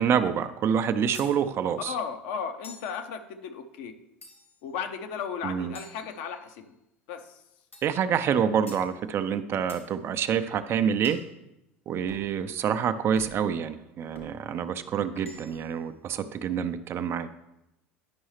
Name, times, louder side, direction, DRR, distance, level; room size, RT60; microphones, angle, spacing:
voice 1, 0.0-1.9 5.4-5.7 7.8-11.2 11.9-17.3, right 8 dB, 40° right, 11 dB, 0.5 m, -27 dB
sound 1, 1.1-1.4 2.6-3.0 4.2-4.7 5.8-6.7 7.7-8.0 8.7-8.9 9.7-9.9 11.0-11.3 12.1-12.3 13.2-13.5 14.1-14.4 15.2-15.8, left 2 dB, 90° left, 1.3 m, -48 dB
voice 2, 1.9-4.0 4.6-6.7 7.1-7.2, left 6 dB, 60° left, 7 dB, 0.8 m, -35 dB
10.5 x 5.4 x 3.2 m, 0.89 s
figure-of-eight pair, 75°, 7 cm